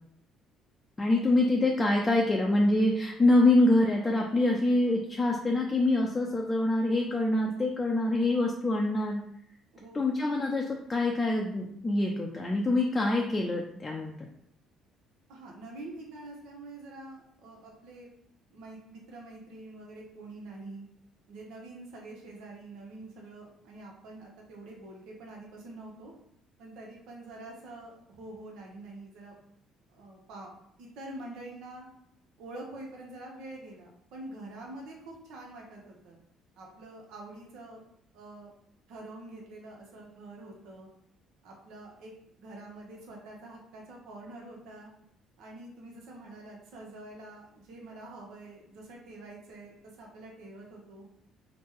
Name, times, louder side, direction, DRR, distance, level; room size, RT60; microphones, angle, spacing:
voice 1, 1.0-9.2 9.9-14.1, left 2 dB, 25° left, -1 dB, 0.5 m, -25 dB
voice 2, 9.7-10.1 15.3-18.1 18.5-20.8 21.3-26.1 26.6-29.3 29.9-30.5 30.8-31.9 32.4-36.2 36.6-37.8 38.1-38.5 38.9-40.9 41.4-42.1 42.4-44.9 45.4-51.1, right 2 dB, 75° right, -1 dB, 0.8 m, -46 dB
3.0 x 2.1 x 3.5 m, 0.71 s
supercardioid pair, 75°, 0 cm